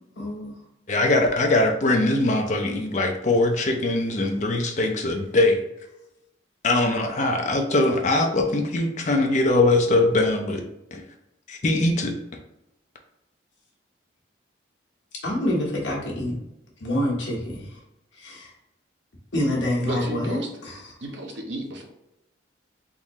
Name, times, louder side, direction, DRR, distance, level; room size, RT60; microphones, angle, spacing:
voice 1, 0.2-0.5 15.2-16.4 16.8-17.6 18.2-18.5 19.3-20.7, left 1 dB, 80° left, -2 dB, 1.2 m, -26 dB
voice 2, 0.9-5.6 6.6-10.6 10.9-11.0 11.5-12.1, left 2 dB, 40° left, 3 dB, 0.5 m, -21 dB
voice 3, 19.8-21.8, right 1 dB, 75° right, 1 dB, 0.8 m, -34 dB
3.7 x 2.7 x 3.1 m, 0.88 s
head